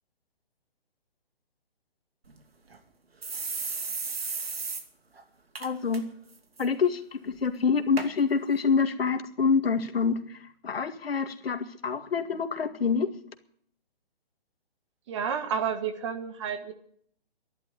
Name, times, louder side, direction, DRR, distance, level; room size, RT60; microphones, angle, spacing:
sound 1, 2.3-2.4 2.7-2.8 3.2-4.8 5.2-5.3 5.6-6.0 6.3-6.7 7.3-7.4 8.0-8.1 8.8-8.9, right 4 dB, 85° right, 2.6 m, -34 dB
voice 1, 5.6-6.0 6.6-13.1, left 5 dB, 75° left, 7 dB, 1.9 m, -27 dB
voice 2, 15.1-16.7, right 7 dB, 30° right, 9 dB, 1.5 m, -30 dB
11.5 x 11.5 x 9.7 m, 0.64 s
hypercardioid pair, 155°, 30 cm